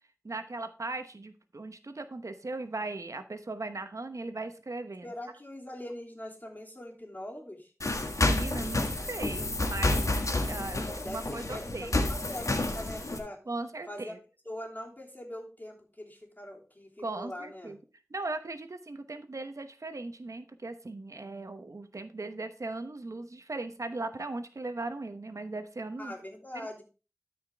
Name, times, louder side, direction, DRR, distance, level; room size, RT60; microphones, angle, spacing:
voice 1, 0.2-5.1 8.2-10.0 10.4-12.0 13.5-14.2 17.0-17.8 18.1-26.1 26.5-26.7, right 2 dB, 85° right, 9 dB, 0.9 m, -38 dB
voice 2, 5.0-7.7 10.9-13.4 13.9-14.2 14.4-17.8 26.0-26.8, left 1 dB, 35° left, -1 dB, 3.1 m, -42 dB
sound 1, 7.8-13.2, left 2 dB, 85° left, 1.5 m, -29 dB
13.0 x 5.2 x 3.5 m, 0.34 s
wide cardioid pair, 40°, 5 cm